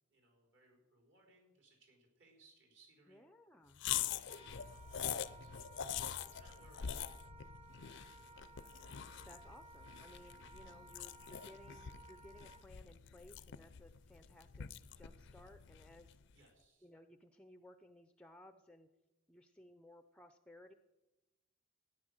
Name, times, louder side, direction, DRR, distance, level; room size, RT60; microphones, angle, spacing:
voice 1, 0.1-3.2 3.9-5.7 6.2-7.0 8.1-8.8 10.3-10.6 16.3-16.9, right 2 dB, 60° right, 1 dB, 4.0 m, -68 dB
voice 2, 3.1-3.8 9.2-14.7 15.0-16.2 16.8-18.9 19.3-20.7, left 1 dB, 5° left, 8 dB, 0.5 m, -59 dB
sound 1, 3.8-16.2, left 9 dB, 60° left, 0.5 m, -44 dB
Wind instrument woodwind instrument, 4.3-12.6, right 3 dB, 30° right, 1.5 m, -59 dB
13.5 x 9.9 x 6.4 m, 1.0 s
head